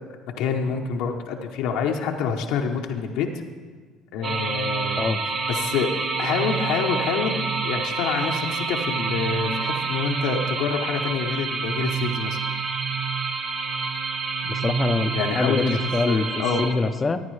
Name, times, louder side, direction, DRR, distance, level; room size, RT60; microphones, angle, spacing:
voice 1, 0.4-3.3 4.1-5.1 5.5-5.9 6.2-12.4 15.1-15.8 16.1-16.7, left 6 dB, 75° left, 2 dB, 0.8 m, -27 dB
sound 1, 4.2-16.7, right 5 dB, 50° right, 1.0 m, -27 dB
voice 2, 14.4-16.2 16.6-17.2, left 3 dB, 25° left, 10 dB, 0.6 m, -24 dB
14.0 x 9.5 x 3.2 m, 1.5 s
supercardioid pair, 85°, 0 cm